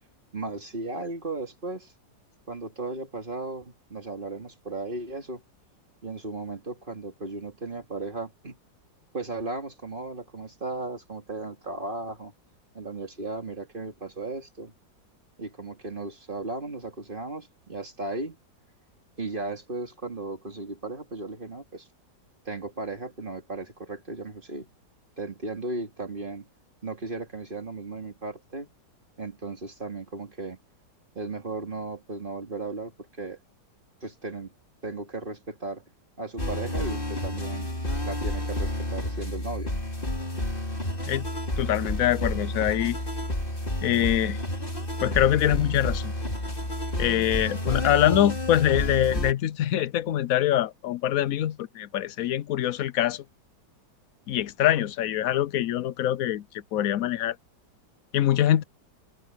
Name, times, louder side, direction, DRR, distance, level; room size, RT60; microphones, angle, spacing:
voice 1, 0.3-1.9 2.5-5.4 6.0-8.6 9.1-12.3 12.7-14.7 15.4-18.4 19.2-21.9 22.4-24.7 25.2-26.5 26.8-28.7 29.2-30.6 31.1-33.4 34.0-34.5 34.8-35.8 36.2-37.7 38.0-39.7, right 2 dB, 30° right, 2.7 m, -36 dB
sound 1, 36.4-49.3, left 1 dB, 25° left, 4.2 m, -30 dB
voice 2, 41.6-43.0 43.8-44.4 45.0-46.1 47.0-53.2 54.3-57.4 58.1-58.6, left 12 dB, 65° left, 0.9 m, -24 dB
omnidirectional pair, 2.0 m